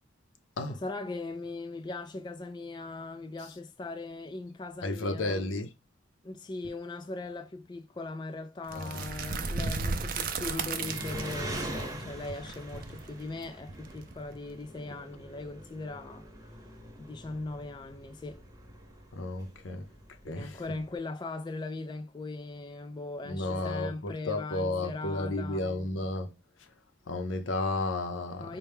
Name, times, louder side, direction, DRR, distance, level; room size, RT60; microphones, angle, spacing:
voice 1, 0.7-5.4 6.2-16.3 17.0-18.5 20.3-25.7 28.4-28.6, left 3 dB, 25° left, 0.3 m, -39 dB
voice 2, 4.8-5.7 8.7-9.3 19.1-19.9 20.2-20.6 23.2-26.3 27.1-28.6, left 2 dB, 80° left, 0.6 m, -33 dB
sound 1, 8.7-14.5, right 4 dB, 45° right, 0.5 m, -35 dB
Engine, 10.8-21.0, right 1 dB, 20° right, 0.8 m, -44 dB
4.3 x 2.2 x 3.4 m
head